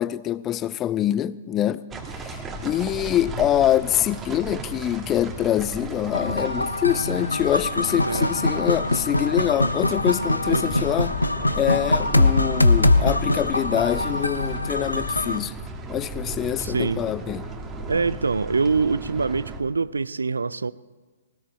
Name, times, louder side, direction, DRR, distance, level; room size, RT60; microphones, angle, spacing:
voice 1, 0.0-1.8 2.1-11.2 11.5-15.5 15.9-17.4, left 12 dB, 20° left, 0.4 m, -25 dB
sound 1, 1.9-19.6, right 2 dB, 15° right, 1.8 m, -35 dB
sound 2, 6.1-15.4, left 2 dB, 85° left, 0.7 m, -23 dB
voice 2, 16.6-17.0 17.9-20.7, right 4 dB, 70° right, 0.5 m, -24 dB
20.0 x 18.5 x 3.3 m
figure-of-eight pair, 120°, 0 cm